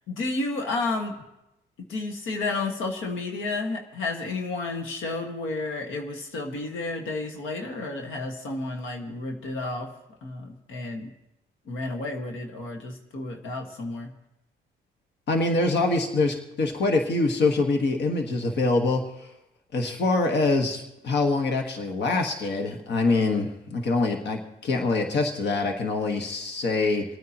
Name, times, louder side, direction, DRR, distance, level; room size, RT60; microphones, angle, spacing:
voice 1, 0.1-1.2 1.9-9.9 10.2-11.1 11.7-14.1, left 3 dB, 80° left, 3 dB, 1.7 m, -31 dB
voice 2, 15.3-19.3 19.7-27.0, left 3 dB, 60° left, 3 dB, 1.5 m, -24 dB
28.0 x 9.4 x 2.9 m, 0.91 s
cardioid pair, 90°, 20 cm